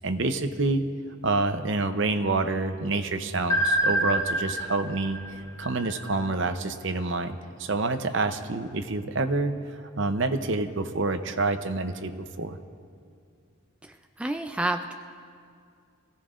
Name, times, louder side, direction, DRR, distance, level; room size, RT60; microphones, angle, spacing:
voice 1, 0.0-0.9 1.2-5.2 5.6-12.6, right 3 dB, 60° right, 8 dB, 0.7 m, -27 dB
sound 1, 3.5-6.4, right 1 dB, 15° left, 1.2 m, -27 dB
voice 2, 13.8-14.9, right 2 dB, 5° right, 5 dB, 0.3 m, -30 dB
24.5 x 16.5 x 2.5 m, 2.3 s
head